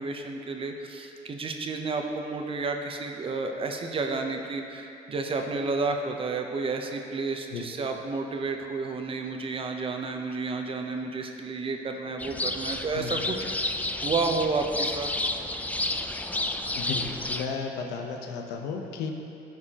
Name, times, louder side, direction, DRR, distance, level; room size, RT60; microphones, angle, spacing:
voice 1, 0.0-13.7 14.0-15.1, right 3 dB, 35° right, 4 dB, 0.7 m, -31 dB
sound 1, 12.2-17.5, left 2 dB, 10° left, 0.4 m, -31 dB
voice 2, 12.9-13.3 16.7-19.1, left 5 dB, 90° left, 2 dB, 0.8 m, -34 dB
14.0 x 4.7 x 2.9 m, 2.7 s
cardioid pair, 110°, 17 cm